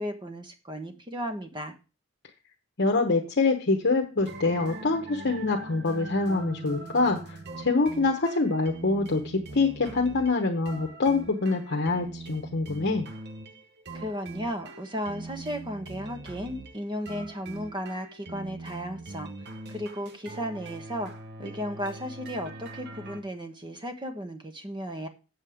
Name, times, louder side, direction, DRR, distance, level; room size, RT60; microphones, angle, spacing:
voice 1, 0.0-1.7 13.9-19.3 19.7-21.1 21.4-25.1, equal, 20° right, 6 dB, 1.2 m, -35 dB
voice 2, 2.8-13.1, left 3 dB, 55° left, 1 dB, 1.0 m, -25 dB
sound 1, 4.2-23.2, right 2 dB, 55° right, 1.1 m, -42 dB
7.6 x 7.5 x 4.9 m, 0.32 s
head